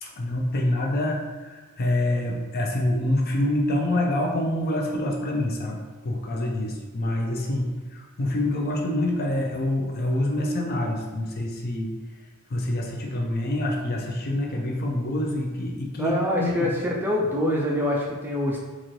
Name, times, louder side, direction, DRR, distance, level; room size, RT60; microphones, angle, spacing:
voice 1, 0.0-11.9 12.5-16.7, left 1 dB, 45° left, 0 dB, 0.6 m, -26 dB
voice 2, 16.0-16.7 17.0-18.6, left 1 dB, 10° right, -3 dB, 0.4 m, -25 dB
4.1 x 2.5 x 3.1 m, 1.3 s
head